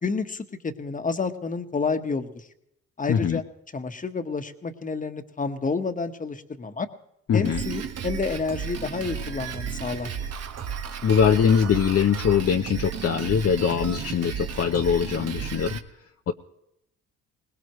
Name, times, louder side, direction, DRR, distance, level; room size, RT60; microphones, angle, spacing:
voice 1, 0.0-2.5 3.0-3.4 3.7-6.9 7.3-10.2, left 4 dB, 25° left, 8 dB, 1.4 m, -29 dB
voice 2, 3.1-3.4 7.3-7.6 11.0-15.8 16.3-16.4, left 7 dB, 50° left, 5 dB, 0.8 m, -22 dB
Drum kit, 7.4-15.8, right 7 dB, 55° right, 1.4 m, -33 dB
22.0 x 19.5 x 3.2 m, 0.80 s
cardioid pair, 90°, 30 cm